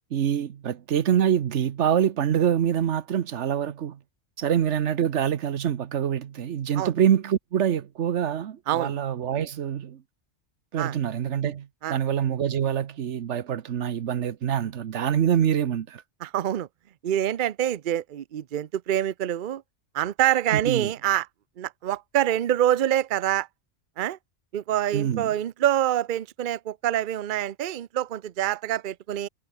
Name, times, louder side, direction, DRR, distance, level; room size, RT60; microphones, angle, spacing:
voice 1, 0.1-4.0 4.4-10.0 10.7-16.0 20.5-20.9 24.9-25.3, right 9 dB, 85° right, 1.2 m, -25 dB
voice 2, 16.2-16.7 17.0-19.6 19.9-21.3 21.6-23.5 24.0-24.2 24.5-29.3, right 11 dB, 50° right, 0.7 m, -26 dB
omnidirectional pair, 1.2 m